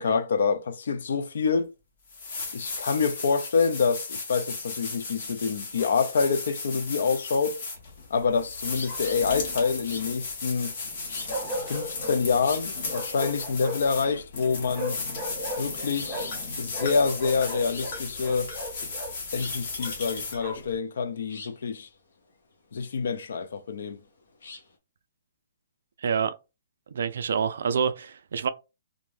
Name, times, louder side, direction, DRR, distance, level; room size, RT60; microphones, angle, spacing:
voice 1, 0.0-1.7 2.5-7.6 8.1-10.7 11.6-15.0 15.6-16.2 16.6-18.5 19.3-21.9 22.7-24.0, left 5 dB, 60° left, 0.4 m, -27 dB
sound 1, 1.6-1.7 2.1-20.8, left 3 dB, 40° left, 0.8 m, -36 dB
Bark, 5.8-6.4 8.8-9.9 11.3-12.2 12.9-14.0 14.7-16.5 16.7-19.1 19.8-20.7, equal, 5° right, 0.6 m, -37 dB
sound 2, 7.8-24.8, left 4 dB, 75° left, 0.8 m, -47 dB
voice 2, 26.0-26.3 26.9-28.5, right 6 dB, 60° right, 0.3 m, -27 dB
2.5 x 2.1 x 3.2 m
hypercardioid pair, 175°, 0 cm